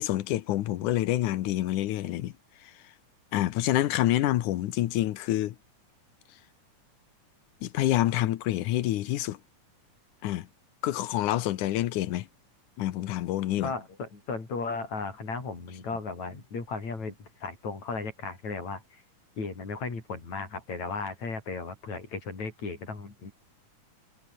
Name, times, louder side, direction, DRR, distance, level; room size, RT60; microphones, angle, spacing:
voice 1, 0.0-2.3 3.3-5.6 7.6-9.4 10.2-10.5 10.8-12.3 12.8-13.7, left 14 dB, 80° left, 2.5 m, -27 dB
voice 2, 13.6-19.0 19.4-23.3, left 4 dB, 60° left, 7.1 m, -35 dB
omnidirectional pair, 3.6 m